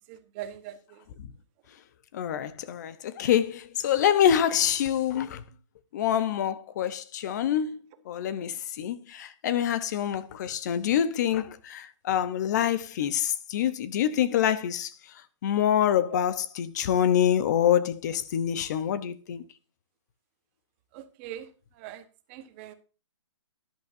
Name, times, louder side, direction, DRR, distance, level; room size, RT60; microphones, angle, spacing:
voice 1, 0.1-1.0 16.1-16.2 20.9-21.5 21.8-22.0 22.3-22.7, right 12 dB, 25° right, 1.2 m, -41 dB
voice 2, 2.1-5.4 5.9-7.8 8.1-14.9 15.4-19.4, left 10 dB, 35° left, 0.8 m, -26 dB
13.5 x 11.0 x 2.7 m
hypercardioid pair, 160°, 16 cm